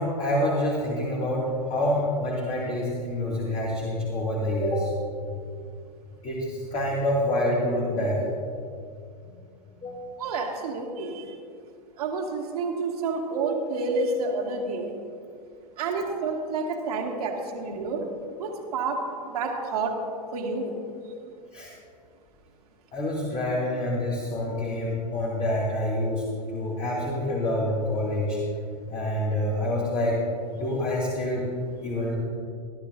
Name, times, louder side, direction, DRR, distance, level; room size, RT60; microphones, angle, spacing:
voice 1, 0.0-4.9 6.2-8.2 9.8-10.2 21.5-21.7 22.9-26.2 26.5-28.4 28.9-30.2 30.5-31.5 31.8-32.2, left 1 dB, 30° left, -4 dB, 2.5 m, -27 dB
voice 2, 10.2-11.2 12.0-14.9 15.8-18.0 18.4-19.0 19.3-19.9 20.3-20.7, right 3 dB, 60° right, 0 dB, 2.3 m, -29 dB
22.0 x 12.0 x 2.7 m, 2.4 s
figure-of-eight pair, 95°, 21 cm